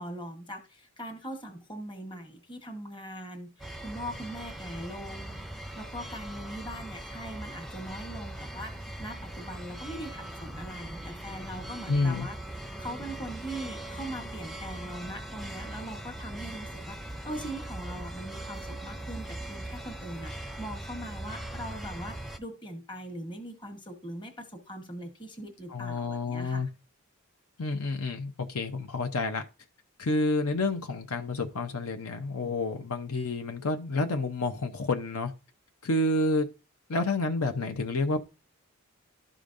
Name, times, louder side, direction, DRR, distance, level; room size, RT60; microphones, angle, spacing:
voice 1, 0.0-5.5 5.8-12.4 12.8-26.6, right 1 dB, 20° left, 1.2 m, -41 dB
sound 1, 3.6-22.4, right 1 dB, ahead, 0.4 m, -40 dB
voice 2, 11.9-12.3 25.7-26.7 27.6-29.4 30.0-35.3 35.8-36.5 36.9-38.2, left 2 dB, 80° left, 0.7 m, -29 dB
12.0 x 5.0 x 2.6 m
head